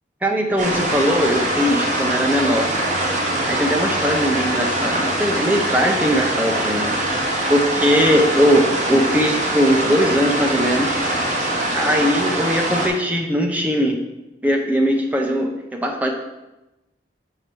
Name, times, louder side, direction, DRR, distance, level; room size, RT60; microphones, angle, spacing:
voice 1, 0.2-2.6 3.5-6.9 7.5-11.0 11.7-14.0 14.4-16.1, equal, 10° right, 1 dB, 0.7 m, -20 dB
sound 1, 0.6-12.9, right 1 dB, 40° right, 1.2 m, -22 dB
6.5 x 4.8 x 4.5 m, 0.99 s
head